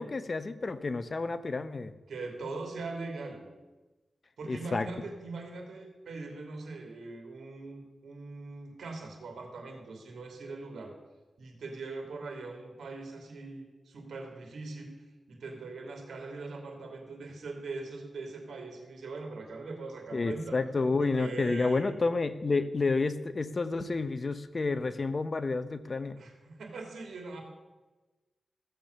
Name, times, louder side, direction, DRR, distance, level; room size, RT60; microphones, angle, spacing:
voice 1, 0.0-1.9 4.5-4.9 20.1-26.2, left 3 dB, 45° left, 12 dB, 0.8 m, -30 dB
voice 2, 2.1-3.4 4.4-10.9 11.4-15.0 15.3-20.6 21.0-21.9 26.1-27.4, right 3 dB, 85° right, 3 dB, 2.8 m, -41 dB
15.0 x 7.4 x 6.7 m, 1.2 s
cardioid pair, 75°, 0 cm